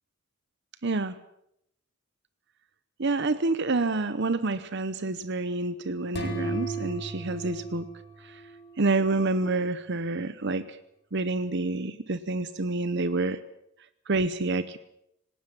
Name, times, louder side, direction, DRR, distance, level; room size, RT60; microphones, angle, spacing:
voice 1, 0.8-1.1 3.0-7.9 8.8-10.8 11.1-13.4 14.1-14.8, right 3 dB, 55° right, 14 dB, 0.9 m, -28 dB
sound 1, 6.1-8.9, right 2 dB, 50° left, 3.8 m, -35 dB
19.0 x 18.5 x 8.8 m, 0.78 s
head